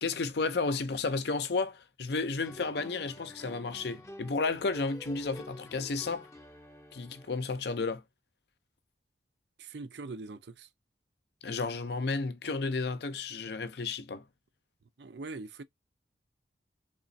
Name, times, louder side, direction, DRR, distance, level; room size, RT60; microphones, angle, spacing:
voice 1, 0.0-6.3 6.9-8.0 11.4-14.2, left 3 dB, 65° left, 0.6 m, -32 dB
sound 1, 2.4-7.6, left 1 dB, 15° left, 0.6 m, -49 dB
voice 2, 9.6-10.7 15.0-15.6, right 3 dB, 70° right, 0.6 m, -42 dB
3.5 x 3.0 x 2.6 m
head